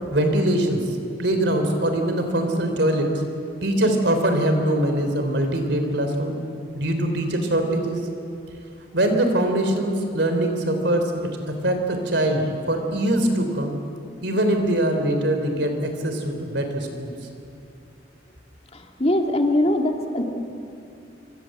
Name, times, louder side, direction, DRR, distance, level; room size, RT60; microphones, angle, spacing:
voice 1, 0.1-0.8 1.2-3.1 3.6-6.4 6.7-8.0 8.9-11.1 11.6-13.8 14.2-17.1, right 1 dB, 60° right, 5 dB, 4.1 m, -22 dB
voice 2, 19.0-20.2, left 1 dB, 30° left, 2 dB, 2.5 m, -21 dB
27.0 x 24.0 x 8.0 m, 2.6 s
head